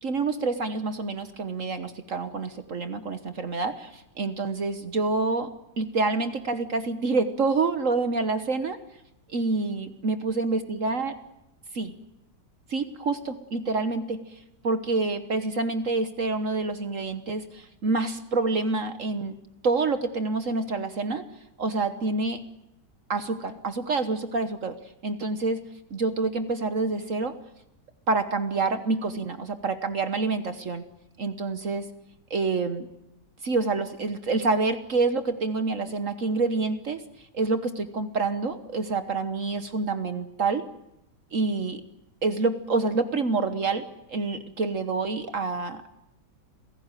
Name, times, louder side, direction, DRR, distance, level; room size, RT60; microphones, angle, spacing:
voice 1, 0.0-8.8 9.3-11.1 11.7-11.9 12.7-14.4 14.6-19.4 19.6-21.3 21.6-22.4 23.1-24.8 25.0-25.6 25.9-27.3 28.1-30.8 31.2-31.9 32.3-32.9 33.4-37.0 37.3-40.7 41.3-41.8 42.2-45.9, right 3 dB, 50° right, 9 dB, 1.4 m, -27 dB
28.0 x 16.5 x 9.1 m, 0.87 s
omnidirectional pair, 1.9 m